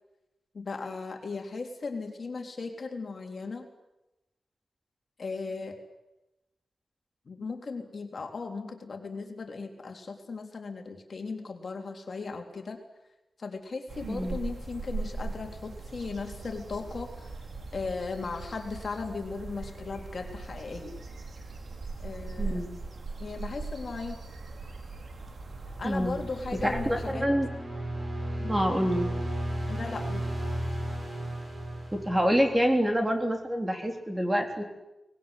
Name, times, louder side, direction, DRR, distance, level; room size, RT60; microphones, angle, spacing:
voice 1, 0.5-3.7 5.2-5.8 7.3-12.8 13.4-17.4 17.7-21.0 22.0-22.6 23.2-24.2 25.8-27.3 28.4-28.6 29.7-30.3, left 4 dB, 60° left, 3 dB, 3.7 m, -37 dB
sound 1, 13.9-27.1, right 3 dB, 65° right, 3.6 m, -40 dB
voice 2, 14.0-14.4 22.4-22.7 25.8-26.2 26.6-27.5 28.5-29.1 31.9-34.6, equal, 15° right, 4 dB, 3.7 m, -26 dB
sound 2, 25.4-32.8, right 1 dB, 45° right, 6.7 m, -35 dB
24.0 x 20.5 x 9.9 m, 0.97 s
wide cardioid pair, 105°, 0 cm